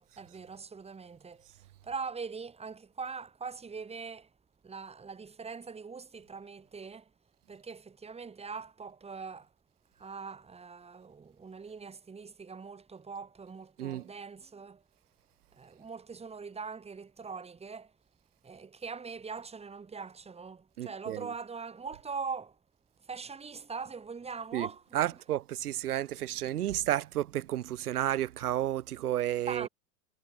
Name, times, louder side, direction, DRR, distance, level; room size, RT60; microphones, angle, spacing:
voice 1, 0.0-1.5 1.8-4.3 4.6-7.1 7.5-9.5 10.0-14.8 15.5-17.9 18.4-22.6 23.0-25.2 29.5-29.7, right 5 dB, 15° right, 4.4 m, -42 dB
voice 2, 20.8-21.3 24.5-29.7, right 13 dB, 80° right, 1.4 m, -32 dB
hypercardioid pair, 125°, 44 cm